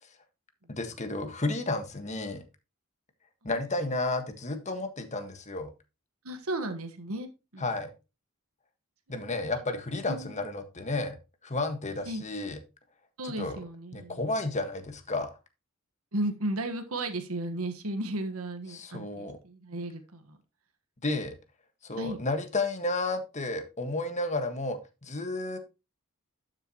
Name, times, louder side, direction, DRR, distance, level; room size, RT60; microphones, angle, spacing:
voice 1, 0.7-2.4 3.4-5.7 7.6-7.9 9.1-11.2 11.4-12.6 13.2-13.6 13.9-15.3 18.7-19.4 21.0-21.3 21.8-25.6, left 2 dB, 35° left, 7 dB, 1.6 m, -32 dB
voice 2, 6.2-7.6 9.2-9.6 10.0-10.4 12.0-12.2 13.2-14.2 16.1-20.4 21.9-22.2, right 1 dB, 80° right, 7 dB, 1.4 m, -35 dB
12.0 x 6.8 x 3.0 m, 0.27 s
head